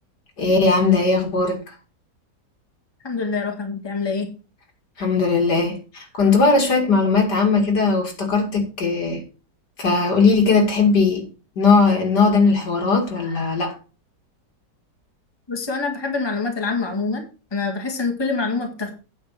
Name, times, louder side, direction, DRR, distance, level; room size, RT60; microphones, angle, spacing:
voice 1, 0.4-1.6 5.0-9.2 9.8-11.2 11.6-13.7, left 4 dB, 70° left, 2.8 m, -18 dB
voice 2, 3.0-4.3 15.5-17.2 17.5-18.9, left 4 dB, 15° left, 1.7 m, -25 dB
8.9 x 6.1 x 5.8 m
omnidirectional pair, 1.9 m